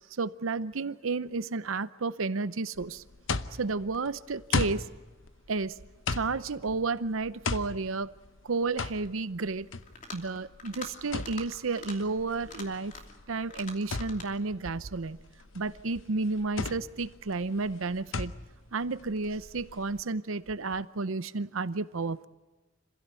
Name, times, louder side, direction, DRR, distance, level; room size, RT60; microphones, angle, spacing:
voice 1, 0.1-3.0 3.6-4.9 5.5-5.8 6.1-8.1 8.4-9.7 10.1-12.9 13.3-15.2 15.5-18.3 18.7-22.3, right 3 dB, 85° right, 15 dB, 0.7 m, -32 dB
sound 1, 2.7-20.0, left 4 dB, 70° left, 0.9 m, -37 dB
sound 2, 9.8-10.3 10.6-10.9 11.2-11.5 11.7-12.0 12.4-13.2 13.5-14.3, left 3 dB, 40° left, 2.8 m, -43 dB
26.5 x 16.0 x 8.3 m, 1.2 s
head